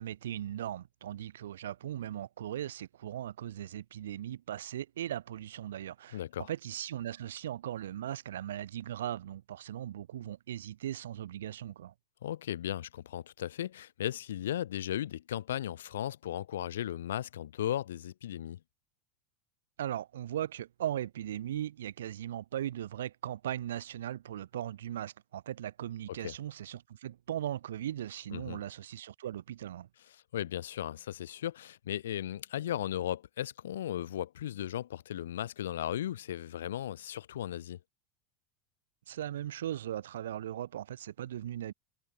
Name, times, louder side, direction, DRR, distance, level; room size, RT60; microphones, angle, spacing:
voice 1, 0.0-6.2 6.5-11.9 19.8-29.9 39.1-41.7, right 11 dB, 85° right, 0.3 m, -38 dB
voice 2, 6.1-6.5 12.2-18.6 26.2-26.3 28.3-28.6 30.3-37.8, left 11 dB, 85° left, 0.6 m, -36 dB
hypercardioid pair, 95°, 0 cm